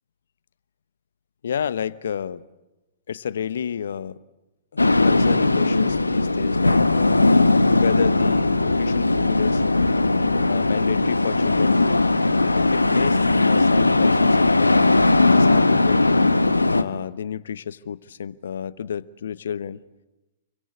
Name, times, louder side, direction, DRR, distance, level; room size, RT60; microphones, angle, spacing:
voice 1, 1.4-2.4 3.1-4.2 4.7-7.2 7.8-9.6 10.4-11.8 12.4-16.0 16.7-19.8, left 8 dB, 65° left, 17 dB, 1.0 m, -30 dB
sound 1, 4.8-16.8, left 2 dB, 90° left, 1.3 m, -18 dB
29.0 x 24.0 x 8.2 m, 1.0 s
figure-of-eight pair, 110°, 0 cm